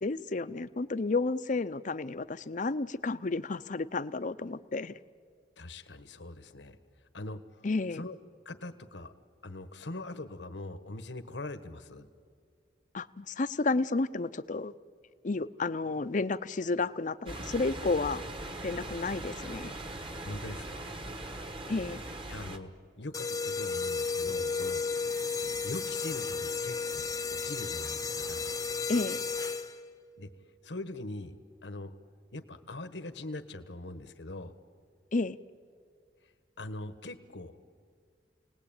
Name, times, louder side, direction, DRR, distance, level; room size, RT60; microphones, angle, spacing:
voice 1, 0.0-5.0 7.6-8.0 12.9-14.7 15.2-18.2 18.6-19.8 21.7-22.0 28.9-29.2 35.1-35.4, left 3 dB, 45° left, 13 dB, 0.6 m, -31 dB
voice 2, 5.6-6.8 7.1-7.7 7.9-8.2 8.4-9.1 9.4-12.1 20.2-20.9 22.3-22.7 23.0-24.8 25.6-28.5 30.2-30.3 30.6-31.3 31.6-31.9 32.3-34.6 36.6-37.5, left 2 dB, 85° left, 10 dB, 1.4 m, -42 dB
sound 1, 17.3-22.6, right 1 dB, 30° right, 1.3 m, -40 dB
sound 2, 23.1-29.9, left 4 dB, 20° left, 0.8 m, -33 dB
29.5 x 19.0 x 8.9 m, 2.1 s
head